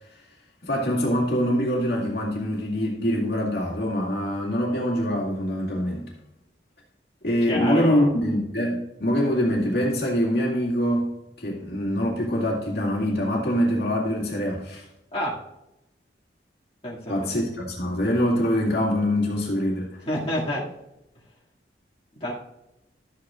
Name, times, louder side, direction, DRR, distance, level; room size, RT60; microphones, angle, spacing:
voice 1, 0.6-6.1 7.2-14.8 17.1-20.0, equal, 60° left, -3 dB, 2.2 m, -24 dB
voice 2, 7.5-8.1 15.1-15.4 16.8-17.3 20.1-20.7 22.2-22.3, equal, 30° left, -7 dB, 2.3 m, -28 dB
12.5 x 8.4 x 2.5 m, 0.92 s
head